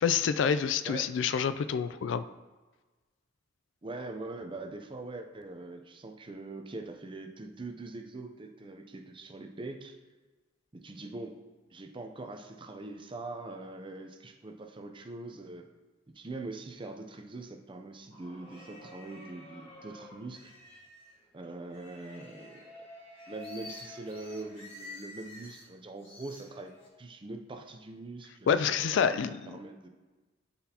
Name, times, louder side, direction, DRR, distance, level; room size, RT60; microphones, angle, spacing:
voice 1, 0.0-2.2 28.5-29.5, left 7 dB, 70° left, 12 dB, 0.3 m, -27 dB
voice 2, 3.8-9.9 10.7-11.4 11.7-15.6 16.1-20.5 21.3-22.7 23.3-26.7 27.0-29.2 29.5-29.9, right 2 dB, 25° right, 5 dB, 0.6 m, -43 dB
sound 1, 18.1-21.1 21.7-25.7 26.0-26.9, left 1 dB, 30° left, 1.7 m, -49 dB
11.5 x 4.1 x 2.9 m, 1.3 s
head